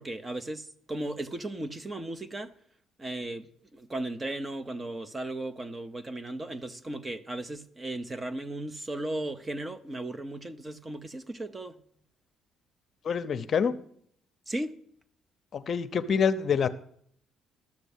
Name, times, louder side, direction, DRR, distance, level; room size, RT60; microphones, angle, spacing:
voice 1, 0.0-2.5 3.0-11.8 14.5-14.7, right 1 dB, 20° right, 0.8 m, -36 dB
voice 2, 13.0-13.7 15.5-16.7, left 6 dB, 45° left, 0.8 m, -26 dB
13.0 x 6.8 x 8.2 m
cardioid pair, 120°, 0 cm